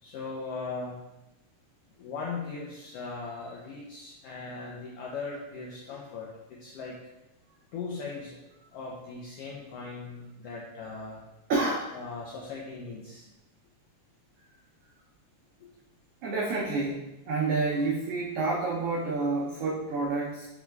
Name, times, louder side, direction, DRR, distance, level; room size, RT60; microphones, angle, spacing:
voice 1, 0.0-1.0 2.0-7.0 7.7-8.4 8.7-11.2 11.9-13.3 15.6-15.7 17.7-17.9, left 4 dB, 85° left, -3 dB, 1.3 m, -39 dB
voice 2, 11.5-11.9 16.2-17.0 17.3-20.5, right 3 dB, 90° right, -3 dB, 1.3 m, -28 dB
4.5 x 4.4 x 2.2 m, 0.96 s
omnidirectional pair, 3.3 m